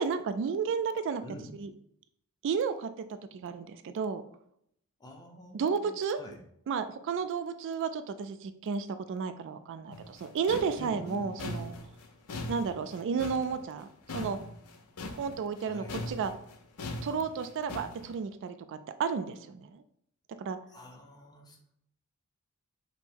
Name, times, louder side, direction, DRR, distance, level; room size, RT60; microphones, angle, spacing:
voice 1, 0.0-1.2 1.6-1.7 2.4-4.2 5.5-6.2 6.7-11.7 12.5-13.9 14.1-14.4 15.2-16.3 17.0-19.8 20.4-20.6, right 6 dB, 55° right, 11 dB, 0.3 m, -32 dB
voice 2, 5.0-6.4 10.8-11.3 15.6-16.0 20.7-21.6, equal, 20° left, 2 dB, 0.7 m, -47 dB
sound 1, 9.9-15.6 15.9-18.1, left 2 dB, 85° left, 0.6 m, -40 dB
5.2 x 2.0 x 4.4 m, 0.70 s
head